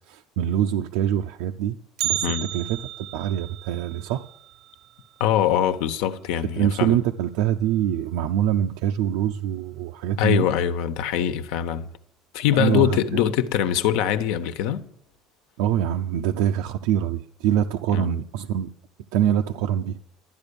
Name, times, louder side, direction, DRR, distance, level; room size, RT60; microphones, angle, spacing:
voice 1, 0.1-1.8 2.0-4.3 6.6-10.5 12.5-13.2 15.6-18.7 19.1-20.0, right 10 dB, 85° right, 0.6 m, -24 dB
Bell, 2.0-6.1 6.4-6.5 6.9-7.0 7.8-7.9 8.7-9.0 9.3-9.4, right 14 dB, 45° right, 0.4 m, -33 dB
voice 2, 5.2-7.0 10.2-11.9 12.3-14.9 17.9-18.2, left 10 dB, 75° left, 1.2 m, -23 dB
12.5 x 9.9 x 6.9 m
cardioid pair, 160°, 0 cm